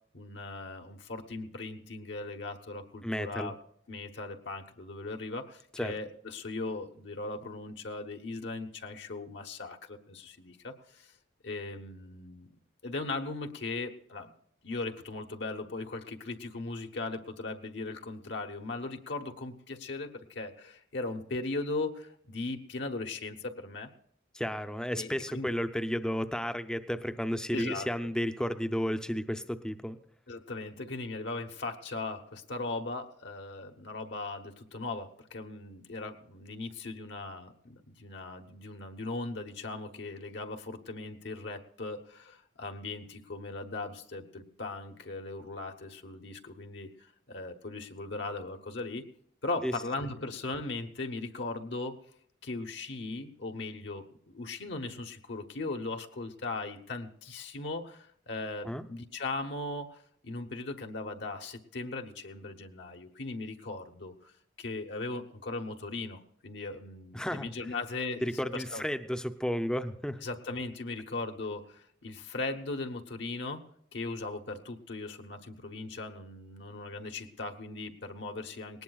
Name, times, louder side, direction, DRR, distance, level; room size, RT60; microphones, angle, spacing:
voice 1, 0.1-3.5 3.9-11.1 11.4-12.5 12.8-14.3 14.6-23.9 24.9-25.5 27.5-28.1 30.3-49.1 49.4-52.0 52.4-64.3 64.6-68.8 70.2-73.6 73.9-78.8, left 3 dB, 65° left, 3 dB, 1.0 m, -38 dB
voice 2, 3.0-3.5 5.8-5.9 24.3-30.0 49.6-49.7 58.6-58.8 67.1-67.5 68.2-70.2, equal, 5° left, 9 dB, 0.6 m, -32 dB
19.0 x 19.0 x 2.4 m, 0.67 s
head